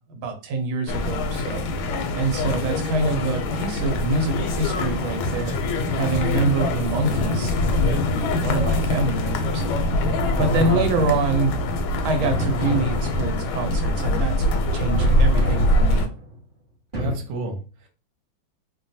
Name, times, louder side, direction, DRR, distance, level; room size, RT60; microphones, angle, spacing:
voice 1, 0.1-1.7 2.1-5.6 6.0-7.5 7.8-8.0 8.4-9.6 10.4-11.6 12.0-16.1, right 3 dB, 85° right, 4 dB, 1.5 m, -25 dB
sound 1, 0.9-16.1, left 1 dB, 85° left, 1.4 m, -23 dB
sound 2, 10.4-11.6 12.2-13.6 15.0-16.4 16.9-17.1, equal, 40° right, 0.7 m, -29 dB
voice 2, 16.9-17.9, right 3 dB, 65° right, 3 dB, 1.3 m, -32 dB
3.3 x 2.2 x 2.6 m, 0.34 s
omnidirectional pair, 2.2 m